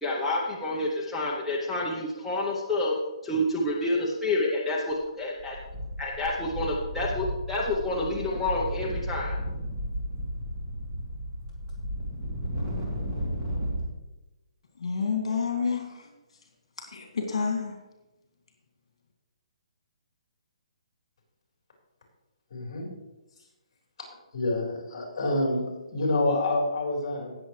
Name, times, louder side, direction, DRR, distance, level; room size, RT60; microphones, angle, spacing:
voice 1, 0.0-3.0 3.2-5.6 6.0-9.4, left 1 dB, ahead, -7 dB, 0.7 m, -28 dB
sound 1, 4.9-5.1 5.4-13.9, equal, 20° right, 2.1 m, -34 dB
voice 2, 14.8-16.1 16.8-17.8, left 5 dB, 65° left, 2 dB, 2.2 m, -29 dB
voice 3, 22.5-22.9 24.3-27.4, left 2 dB, 40° left, -1 dB, 4.0 m, -27 dB
18.0 x 7.1 x 3.2 m, 1.0 s
hypercardioid pair, 180°, 3 cm